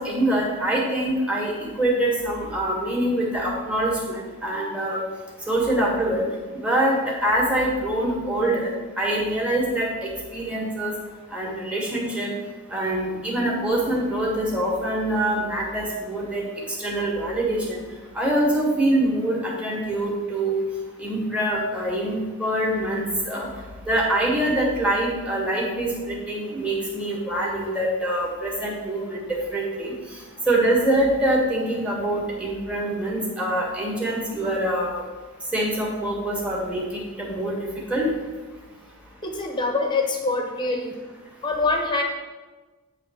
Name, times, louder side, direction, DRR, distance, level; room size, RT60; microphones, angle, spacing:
voice 1, 0.0-5.0 5.5-6.2 6.6-8.7 9.0-10.9 11.3-12.3 12.7-16.5 16.8-17.8 18.1-20.6 21.0-23.5 23.8-29.9 30.5-35.0 35.5-37.6 37.9-38.1, right 1 dB, 5° right, -4 dB, 1.5 m, -24 dB
voice 2, 39.2-41.0 41.4-42.0, left 3 dB, 20° left, 2 dB, 1.0 m, -24 dB
8.8 x 3.3 x 6.2 m, 1.3 s
head